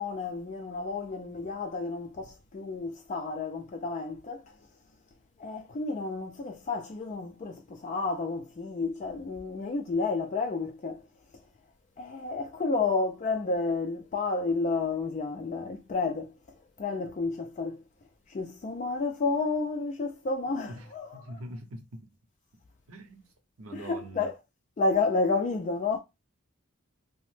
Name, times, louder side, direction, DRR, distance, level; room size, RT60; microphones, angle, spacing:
voice 1, 0.0-4.4 5.4-11.0 12.0-16.3 16.8-17.8 18.3-21.4 23.7-24.4 24.8-26.0, left 3 dB, 35° left, 0.3 m, -31 dB
voice 2, 20.7-22.0 22.9-23.2 23.6-24.3, right 1 dB, 70° right, 0.7 m, -43 dB
2.8 x 2.1 x 3.1 m
head